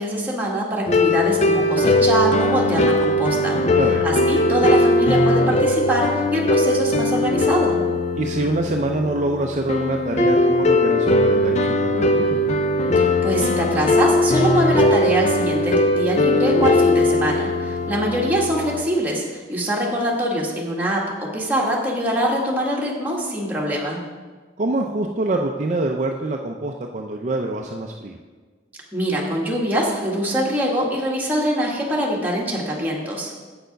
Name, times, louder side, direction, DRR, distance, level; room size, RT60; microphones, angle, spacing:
voice 1, 0.0-3.6 4.0-7.8 12.9-24.0 28.9-33.3, right 1 dB, 10° right, -4 dB, 1.6 m, -23 dB
sound 1, 0.9-18.9, left 1 dB, 35° left, 0.4 m, -19 dB
voice 2, 3.8-4.1 8.2-12.4 24.6-28.2, right 2 dB, 40° right, 2 dB, 0.5 m, -25 dB
7.7 x 6.8 x 5.2 m, 1.4 s
head